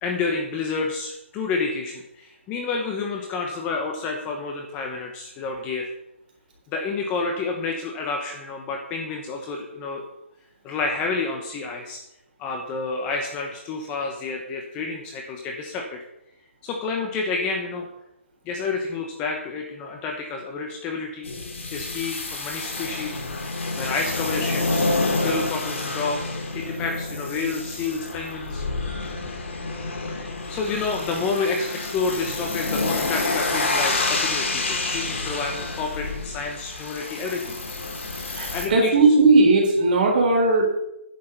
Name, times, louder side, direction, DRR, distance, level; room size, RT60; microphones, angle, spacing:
voice 1, 0.0-5.9 6.7-10.0 10.6-12.0 12.4-16.0 16.6-17.9 18.4-21.3 21.7-23.2 23.8-24.9 25.2-26.2 26.5-28.6 30.1-37.6 38.5-38.9, left 4 dB, 15° left, 2 dB, 1.1 m, -29 dB
sound 1, 21.2-38.7, left 3 dB, 65° left, 3.1 m, -28 dB
voice 2, 38.3-40.8, right 3 dB, 35° right, 0 dB, 3.9 m, -17 dB
9.8 x 6.8 x 6.7 m, 0.83 s
hypercardioid pair, 160°, 7 cm